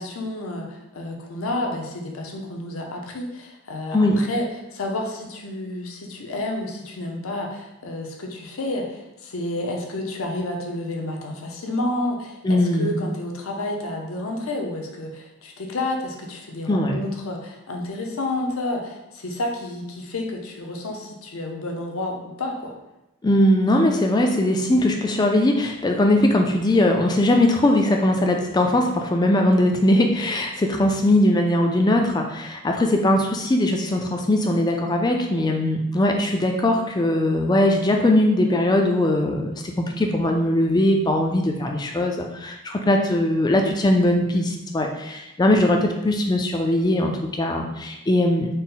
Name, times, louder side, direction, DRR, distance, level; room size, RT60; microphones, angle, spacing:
voice 1, 0.0-4.5 4.7-22.7, left 1 dB, 70° left, 1 dB, 0.6 m, -30 dB
voice 2, 12.4-12.9 16.7-17.0 23.2-48.5, left 1 dB, 20° left, 3 dB, 0.3 m, -20 dB
4.0 x 2.1 x 3.7 m, 0.92 s
head